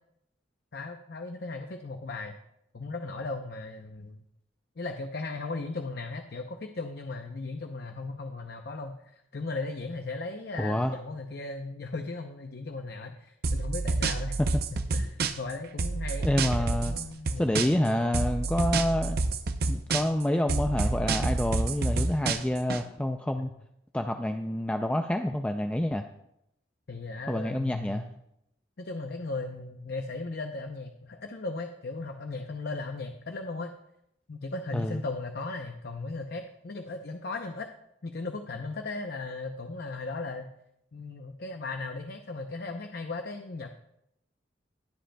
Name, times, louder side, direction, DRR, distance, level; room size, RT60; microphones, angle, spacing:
voice 1, 0.7-2.4 2.7-4.2 4.8-14.4 14.7-16.3 16.6-18.2 23.4-23.5 26.9-28.1 28.8-33.7 34.3-37.7 38.0-40.5 40.9-43.7, left 3 dB, 60° left, 5 dB, 0.6 m, -37 dB
voice 2, 10.6-11.0 16.2-16.9 17.4-19.2 19.7-23.5 23.9-26.1 27.3-28.1 34.7-35.0, left 1 dB, 5° left, 5 dB, 0.3 m, -28 dB
sound 1, 13.4-15.5 15.8-17.9 18.1-20.2 20.5-22.8, right 3 dB, 55° right, 0.6 m, -28 dB
20.5 x 7.7 x 2.2 m, 0.80 s
head